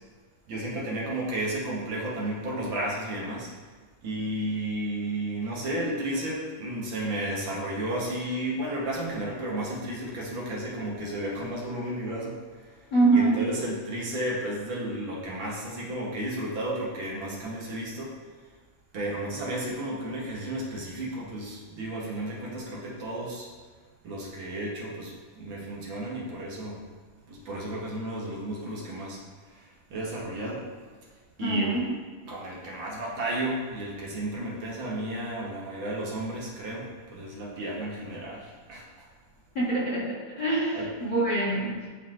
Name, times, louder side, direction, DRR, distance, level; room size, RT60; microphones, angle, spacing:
voice 1, 0.5-3.5 4.0-12.8 13.1-18.1 18.9-23.5 24.0-26.8 27.3-30.7 31.4-31.8 32.3-39.1 40.7-40.9, right 1 dB, 70° right, -4 dB, 1.8 m, -33 dB
voice 2, 12.9-13.4 31.4-31.8 39.6-40.1 40.4-41.7, right 2 dB, 60° left, -10 dB, 2.7 m, -24 dB
10.5 x 3.9 x 2.5 m, 1.4 s
omnidirectional pair, 2.3 m